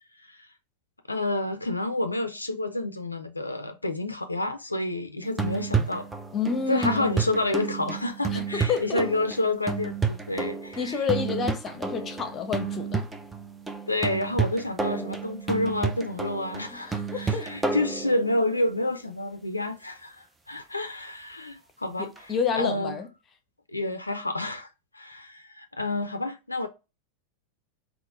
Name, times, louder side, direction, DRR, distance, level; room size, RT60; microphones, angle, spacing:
voice 1, 1.1-6.1 6.7-11.0 13.9-22.9 23.7-24.7 24.9-26.7, left 2 dB, 80° left, 0.4 m, -29 dB
sound 1, 5.2-18.6 22.2-22.3, right 5 dB, 10° right, 0.5 m, -31 dB
voice 2, 6.3-7.1 8.3-9.1 10.8-13.1 16.7-17.5 22.0-23.1, left 6 dB, 25° left, 0.8 m, -29 dB
3.9 x 2.9 x 3.6 m
figure-of-eight pair, 90°, 0 cm